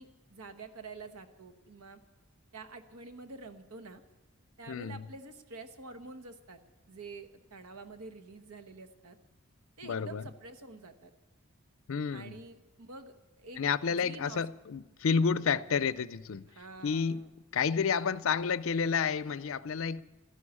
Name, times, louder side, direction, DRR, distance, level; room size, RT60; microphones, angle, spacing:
voice 1, 0.0-2.0 2.5-4.0 4.6-6.6 6.9-9.2 9.8-11.1 12.1-14.4 16.5-17.3 17.8-18.1, right 3 dB, 85° right, 1.2 m, -48 dB
voice 2, 4.7-5.0 9.8-10.2 11.9-12.4 13.6-16.4 16.8-17.3 17.5-20.0, left 6 dB, 65° left, 0.5 m, -30 dB
13.5 x 11.0 x 8.6 m
head